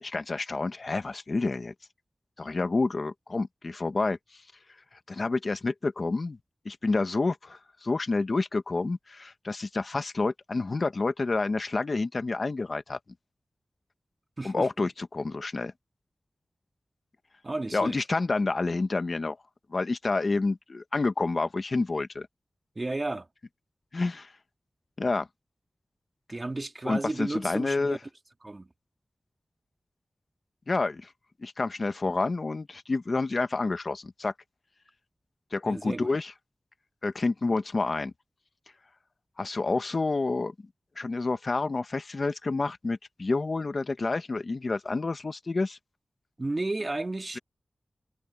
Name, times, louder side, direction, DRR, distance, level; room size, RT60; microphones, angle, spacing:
voice 1, 0.0-1.7 2.4-4.4 5.1-6.4 6.6-13.0 14.4-15.7 17.7-19.4 19.7-22.3 23.9-24.3 25.0-25.3 26.8-28.0 30.7-31.1 31.4-34.3 35.5-36.3 37.0-38.1 39.4-40.5 41.0-45.8, left 3 dB, 55° left, 1.1 m, -29 dB
voice 2, 14.4-14.7 17.4-18.0 22.8-23.3 26.3-28.0 28.4-28.7 35.6-36.1 46.4-47.4, right 2 dB, 35° right, 2.2 m, -33 dB
wide cardioid pair, 95°, 0 cm